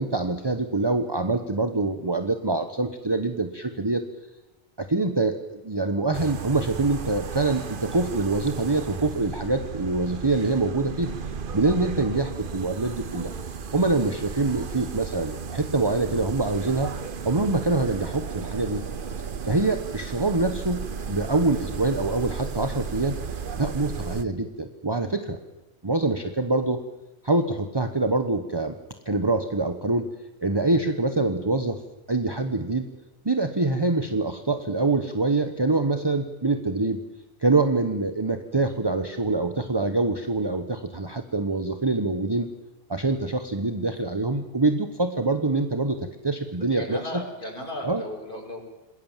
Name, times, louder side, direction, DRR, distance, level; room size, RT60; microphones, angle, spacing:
voice 1, 0.0-4.0 4.8-11.1 11.5-13.3 13.7-16.9 17.2-18.8 19.4-23.2 23.5-25.4 25.8-26.8 27.2-28.7 29.0-30.1 30.4-31.8 32.1-32.9 33.2-37.0 37.4-42.5 42.9-47.2 47.8-48.0, right 3 dB, 25° right, 7 dB, 1.2 m, -25 dB
sound 1, 6.1-24.2, right 6 dB, 55° right, 1.2 m, -34 dB
voice 2, 46.5-48.6, left 1 dB, 50° left, 0 dB, 5.7 m, -36 dB
28.0 x 20.5 x 7.4 m, 1.0 s
omnidirectional pair, 1.1 m